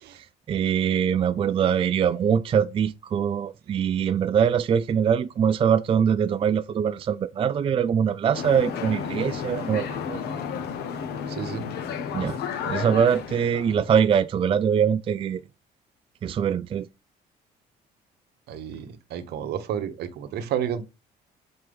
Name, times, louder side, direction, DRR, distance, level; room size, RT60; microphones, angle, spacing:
voice 1, 0.1-10.2 12.1-12.4 12.7-15.4 16.2-16.9, right 8 dB, 35° right, 0.3 m, -23 dB
sound 1, 8.3-13.9, left 7 dB, 75° left, 1.1 m, -32 dB
voice 2, 11.3-11.7 18.5-20.8, right 9 dB, 70° right, 0.9 m, -31 dB
6.4 x 4.4 x 3.5 m
cardioid pair, 110°, 17 cm